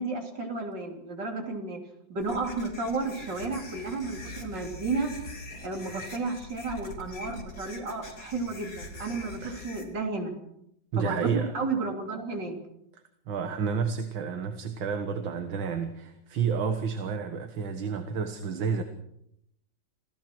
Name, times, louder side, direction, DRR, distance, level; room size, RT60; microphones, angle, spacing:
voice 1, 0.0-1.8 2.1-5.1 5.6-10.3 11.0-11.3 11.5-12.6, right 3 dB, 65° right, 3 dB, 4.0 m, -32 dB
sound 1, 2.2-9.8, left 2 dB, 50° left, 3.8 m, -43 dB
voice 2, 10.9-11.5 13.3-18.8, right 6 dB, 80° right, 7 dB, 2.2 m, -30 dB
27.0 x 16.5 x 6.1 m, 0.76 s
omnidirectional pair, 2.1 m